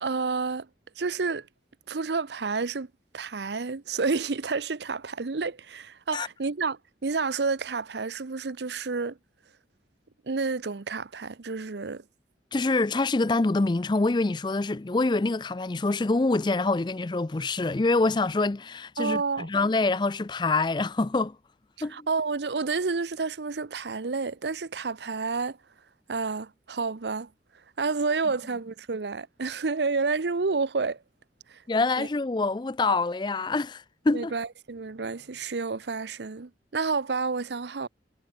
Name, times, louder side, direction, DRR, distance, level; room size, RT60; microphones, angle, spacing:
voice 1, 0.0-0.7 1.0-1.5 1.9-2.9 3.1-9.2 10.3-12.0 19.0-19.5 21.8-25.6 26.1-27.3 27.8-31.0 31.5-31.6 32.0-32.1 34.1-37.9, right 4 dB, 80° right, 0.7 m, -30 dB
voice 2, 12.5-21.4 21.8-22.1 31.7-34.3, left 3 dB, 25° left, 0.4 m, -25 dB
head